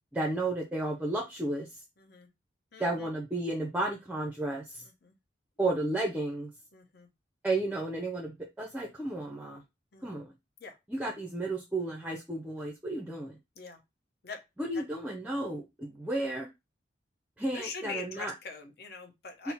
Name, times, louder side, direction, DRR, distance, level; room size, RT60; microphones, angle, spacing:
voice 1, 0.1-1.8 2.8-4.8 5.6-6.5 7.4-9.6 10.0-10.3 10.9-13.4 14.6-16.5 17.4-18.3 19.4-19.5, right 2 dB, 10° right, 1 dB, 0.5 m, -33 dB
voice 2, 2.0-2.3 2.7-3.1 5.0-5.1 6.7-7.1 9.9-10.1 10.6-10.8 13.6-13.8 14.2-14.4 14.7-14.8 17.5-19.5, left 4 dB, 60° left, 5 dB, 0.8 m, -43 dB
4.1 x 2.0 x 4.3 m, 0.23 s
head